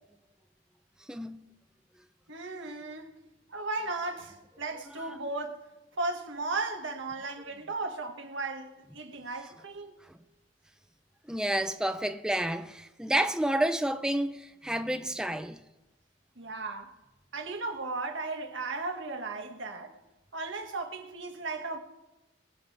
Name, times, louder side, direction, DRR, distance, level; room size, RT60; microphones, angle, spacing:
voice 1, 1.1-1.4 5.0-5.1 11.3-15.6, right 1 dB, 5° right, 0.5 m, -30 dB
voice 2, 2.3-3.2 3.5-5.6 6.0-9.9 16.4-16.9 17.3-20.0 20.3-21.8, right 3 dB, 90° right, 1.6 m, -36 dB
23.5 x 7.9 x 3.3 m
head